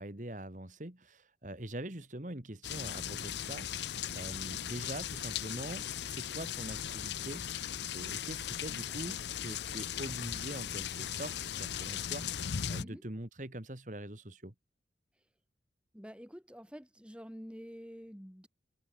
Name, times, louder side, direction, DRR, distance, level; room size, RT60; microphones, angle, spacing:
voice 1, 0.0-14.5, right 1 dB, 45° right, 2.1 m, -44 dB
sound 1, 2.6-12.8, left 9 dB, 80° left, 0.6 m, -38 dB
voice 2, 15.9-18.5, equal, 5° right, 3.5 m, -48 dB
head